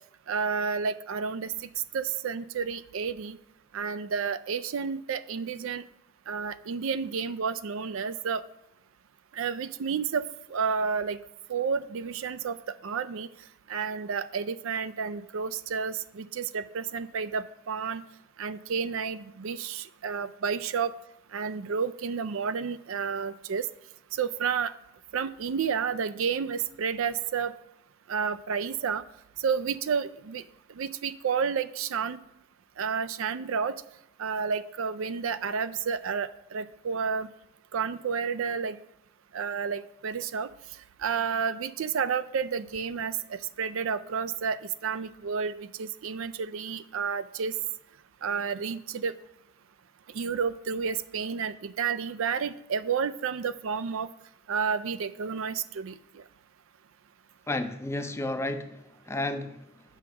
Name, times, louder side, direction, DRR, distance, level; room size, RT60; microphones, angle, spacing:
voice 1, 0.3-1.7 1.9-3.4 3.7-5.8 6.3-8.4 9.3-11.2 11.5-12.6 12.8-13.3 13.7-18.0 18.4-20.9 21.3-23.7 24.1-24.7 25.1-27.5 28.1-29.0 29.4-30.4 30.8-32.2 32.8-33.8 34.2-37.3 37.7-38.8 39.3-40.5 41.0-47.5 48.2-49.1 50.1-54.1 54.5-56.2, right 6 dB, 60° right, 15 dB, 0.4 m, -31 dB
voice 2, 57.5-59.8, left 2 dB, 10° left, 8 dB, 0.5 m, -32 dB
7.7 x 6.1 x 5.8 m, 0.86 s
head